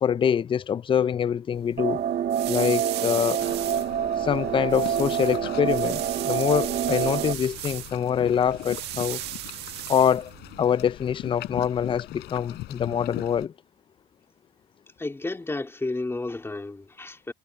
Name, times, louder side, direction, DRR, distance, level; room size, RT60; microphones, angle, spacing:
voice 1, 0.0-2.0 2.5-3.4 4.2-9.2 9.9-10.3 10.6-13.5, left 8 dB, 30° left, 0.5 m, -25 dB
sound 1, 1.5-10.7, right 15 dB, 85° right, 1.6 m, -37 dB
sound 2, 1.8-7.3, right 9 dB, 55° right, 1.5 m, -27 dB
sound 3, 3.4-13.5, left 17 dB, 85° left, 4.4 m, -41 dB
voice 2, 15.0-17.3, left 2 dB, 15° left, 3.8 m, -32 dB
cardioid pair, 110°, 17 cm